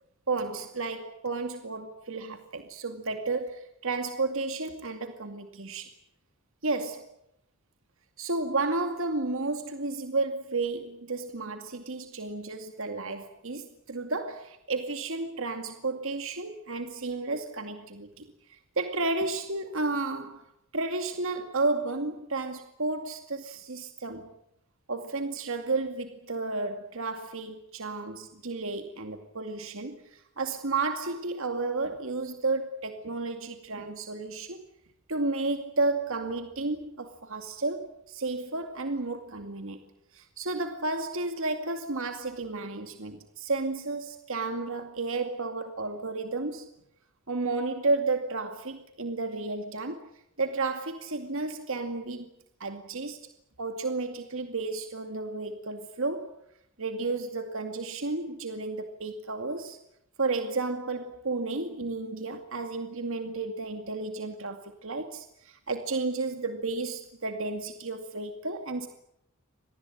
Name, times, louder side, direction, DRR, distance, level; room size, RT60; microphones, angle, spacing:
voice 1, 0.3-5.9 6.6-7.1 8.2-20.4 20.7-24.3 24.9-34.6 35.1-39.8 40.1-46.7 47.3-50.0 50.4-52.3 52.6-53.2 53.6-56.3 56.8-59.8 60.2-68.9, right 3 dB, 70° right, 2.4 m, -32 dB
26.5 x 19.5 x 8.8 m
head